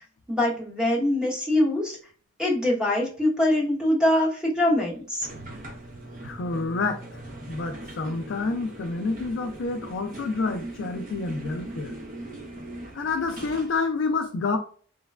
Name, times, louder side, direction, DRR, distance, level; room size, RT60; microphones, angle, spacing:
voice 1, 0.3-2.0 2.4-5.3, left 1 dB, 5° right, 0.9 m, -23 dB
sound 1, 5.2-13.8, right 2 dB, 40° right, 0.6 m, -40 dB
voice 2, 6.2-7.0 7.5-12.0 12.9-14.6, left 3 dB, 55° left, 0.3 m, -28 dB
3.1 x 2.1 x 2.2 m
head